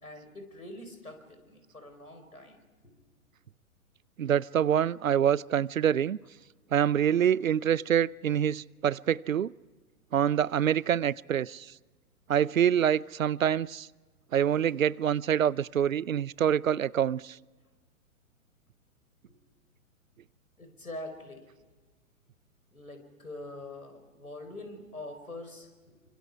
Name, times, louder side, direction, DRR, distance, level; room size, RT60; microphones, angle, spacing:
voice 1, 0.0-2.6 20.6-21.5 22.7-25.9, left 1 dB, 85° left, 7 dB, 4.9 m, -44 dB
voice 2, 4.2-6.2 6.7-9.5 10.1-11.7 12.3-13.9 14.3-17.4, right 9 dB, 65° right, 24 dB, 0.6 m, -26 dB
29.5 x 25.0 x 4.8 m, 1.3 s
figure-of-eight pair, 115°, 43 cm